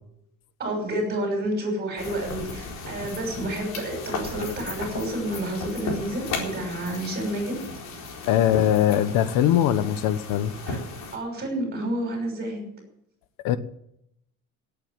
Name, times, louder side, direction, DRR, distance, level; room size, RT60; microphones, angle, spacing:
voice 1, 0.6-7.6 10.7-10.8 11.1-12.7, right 1 dB, 30° right, 4 dB, 6.0 m, -29 dB
sound 1, 2.0-11.2, left 3 dB, 50° left, 4.4 m, -35 dB
voice 2, 8.3-10.5 13.4-13.6, left 11 dB, 80° left, 13 dB, 1.2 m, -21 dB
18.0 x 8.8 x 7.7 m, 0.78 s
cardioid pair, 165°, 33 cm